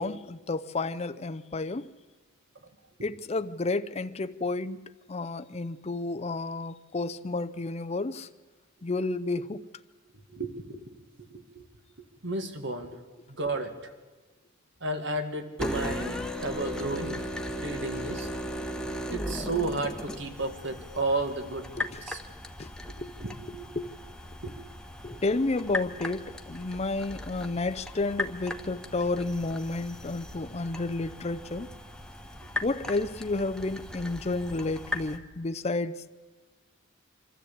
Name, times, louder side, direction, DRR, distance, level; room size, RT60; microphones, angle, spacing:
voice 1, 0.0-1.9 3.0-8.3 8.8-9.7 18.0-18.1 21.8-22.0 22.6-22.7 23.0-23.9 24.4-24.5 25.0-31.7 32.6-36.1, left 3 dB, 30° left, 0.5 m, -31 dB
voice 2, 10.3-10.7 11.3-11.6 12.2-13.0 13.3-13.9 14.8-18.3 19.1-22.2 23.2-23.8 24.4-24.7 25.1-25.2, right 2 dB, 60° right, 1.9 m, -33 dB
sound 1, 15.6-35.2, equal, 5° left, 1.1 m, -37 dB
24.5 x 13.5 x 8.5 m
head